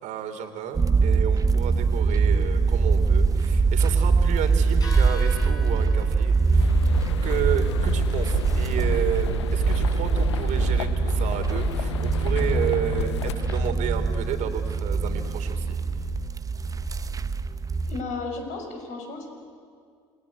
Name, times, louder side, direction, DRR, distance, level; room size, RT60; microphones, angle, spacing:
voice 1, 0.0-6.7 7.2-15.8, right 8 dB, 60° right, 7 dB, 3.2 m, -31 dB
sound 1, 0.7-18.0, right 4 dB, 25° right, 1.0 m, -23 dB
sound 2, 1.5-12.5, left 2 dB, 25° left, 7.5 m, -48 dB
sound 3, 6.6-13.7, left 10 dB, 80° left, 0.7 m, -33 dB
voice 2, 17.9-19.3, left 3 dB, 55° left, 3 dB, 6.3 m, -33 dB
28.0 x 21.5 x 9.7 m, 2.2 s
hypercardioid pair, 65°, 14 cm